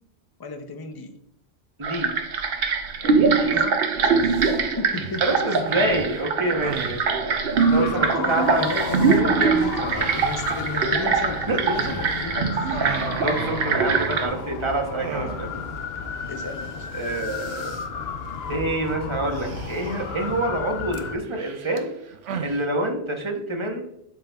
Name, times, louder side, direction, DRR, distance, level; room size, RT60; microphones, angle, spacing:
voice 1, 0.4-1.2 3.5-5.3 7.8-12.7 15.5-15.6 16.3-16.9, left 4 dB, 30° left, 6 dB, 0.4 m, -33 dB
voice 2, 1.8-2.1 3.0-3.5 5.2-7.2 7.4-8.7 11.5-11.7 13.2-15.5 16.9-17.7 18.5-21.9 22.4-23.8, right 2 dB, 25° right, 3 dB, 0.9 m, -27 dB
Creepy Hellish Bubbling, 1.8-14.3, right 5 dB, 55° right, 0.8 m, -23 dB
sound 1, 4.3-4.6 4.9-7.1 8.6-9.2 9.9-12.3 12.6-14.6 15.0-15.7 16.0-16.1 16.4-16.7 16.9-17.9 19.3-20.2 20.9-22.6, right 6 dB, 85° right, 1.0 m, -37 dB
sound 2, 7.6-21.2, left 6 dB, 60° left, 0.8 m, -33 dB
11.5 x 4.1 x 2.3 m, 0.78 s
omnidirectional pair, 1.2 m